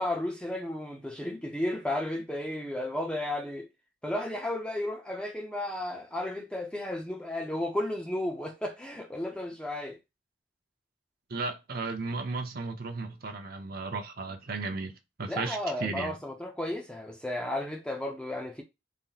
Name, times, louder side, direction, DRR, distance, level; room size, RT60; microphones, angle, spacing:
voice 1, 0.0-3.7 4.0-10.0 15.3-18.6, left 1 dB, 5° left, 0.5 m, -33 dB
voice 2, 11.3-14.9 15.2-16.2, right 3 dB, 50° right, 0.6 m, -34 dB
4.1 x 2.0 x 3.9 m
head